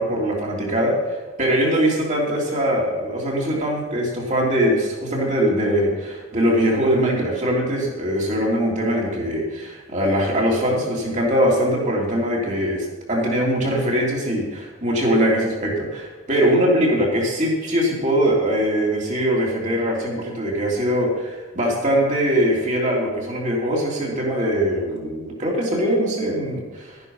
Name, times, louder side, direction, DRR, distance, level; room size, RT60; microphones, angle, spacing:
voice 1, 0.0-27.0, equal, 35° right, -3 dB, 3.4 m, -22 dB
12.5 x 11.0 x 5.7 m, 1.2 s
head